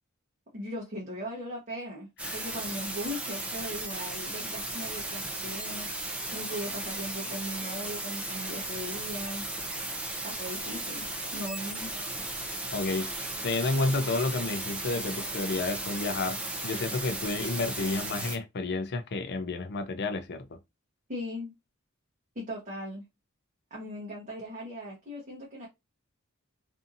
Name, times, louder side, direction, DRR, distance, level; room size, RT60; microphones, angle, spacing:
voice 1, 0.5-5.9 6.3-9.4 10.2-11.1 11.3-11.9 21.1-21.5 22.3-23.0 23.7-25.7, equal, 40° right, 0.9 m, -38 dB
sound 1, 2.2-18.4, right 2 dB, 5° right, 0.5 m, -36 dB
voice 2, 12.7-13.1 13.4-16.4 16.6-20.6, left 3 dB, 55° left, 0.5 m, -30 dB
2.6 x 2.6 x 2.5 m
head